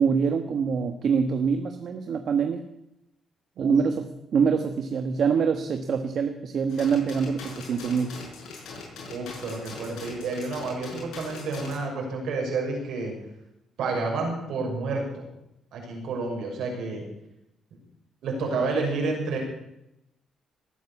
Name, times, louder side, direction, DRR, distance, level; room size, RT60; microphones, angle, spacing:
voice 1, 0.0-2.6 3.6-8.2, right 6 dB, 60° right, 6 dB, 1.4 m, -25 dB
sound 1, 6.7-11.7, left 3 dB, 85° left, 6.2 m, -41 dB
voice 2, 9.1-13.1 13.8-15.2 15.7-17.0 18.2-19.4, right 3 dB, 75° right, 0 dB, 6.4 m, -30 dB
19.0 x 9.3 x 7.1 m, 0.85 s
cardioid pair, 90°, 0 cm